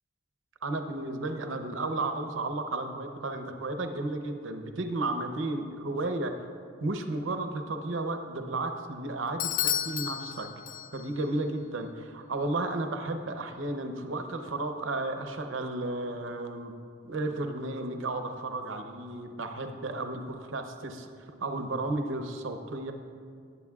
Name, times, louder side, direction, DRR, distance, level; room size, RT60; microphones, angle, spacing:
voice 1, 0.6-6.3 6.8-10.5 10.9-16.7 17.0-21.1 21.4-22.9, right 2 dB, 80° right, 5 dB, 0.8 m, -33 dB
Bell / Doorbell, 9.4-11.2, left 11 dB, 45° left, 0.3 m, -32 dB
19.0 x 8.4 x 2.4 m, 2.2 s
head